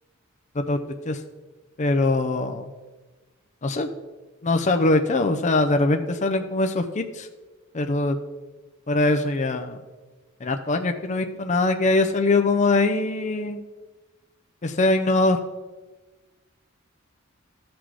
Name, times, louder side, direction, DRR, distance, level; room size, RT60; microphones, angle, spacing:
voice 1, 1.8-2.7 3.6-3.9 4.4-7.3 7.7-8.2 8.9-9.8 10.4-13.6 14.6-15.4, left 2 dB, 35° left, 6 dB, 0.6 m, -22 dB
14.0 x 6.1 x 4.8 m, 1.2 s
head